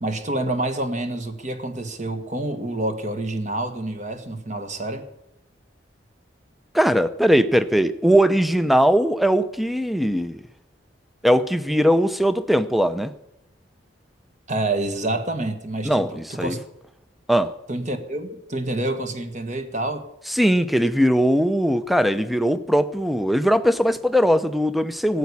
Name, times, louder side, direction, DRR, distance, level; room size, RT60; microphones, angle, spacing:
voice 1, 0.0-5.1 14.5-16.6 17.7-20.0, right 2 dB, 40° right, 7 dB, 1.5 m, -27 dB
voice 2, 6.7-10.4 11.2-13.1 15.8-16.6 17.3-17.5 20.3-25.2, equal, ahead, 12 dB, 0.6 m, -20 dB
15.0 x 8.3 x 9.7 m, 0.82 s
head